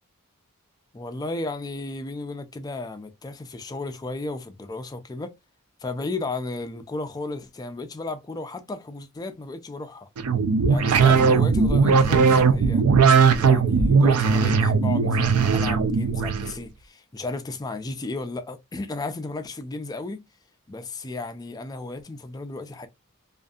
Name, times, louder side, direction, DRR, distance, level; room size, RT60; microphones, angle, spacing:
voice 1, 0.9-5.3 5.8-10.1 10.7-12.8 13.3-20.2 20.7-22.9, left 2 dB, 15° left, 0.3 m, -34 dB
sound 1, 10.2-16.5, right 5 dB, 75° right, 0.4 m, -19 dB
2.6 x 2.5 x 2.3 m
head